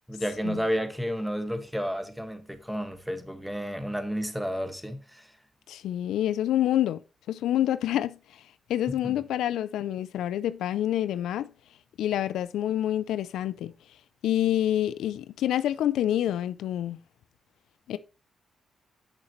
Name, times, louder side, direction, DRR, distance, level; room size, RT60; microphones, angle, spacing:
voice 1, 0.1-5.3 8.9-9.2, equal, ahead, 1.7 m, -31 dB
voice 2, 5.7-7.0 7.3-8.4 8.7-11.5 12.0-13.7 14.2-17.0 17.9-18.0, left 12 dB, 85° left, 0.4 m, -27 dB
8.9 x 6.6 x 3.1 m
cardioid pair, 65°, 0 cm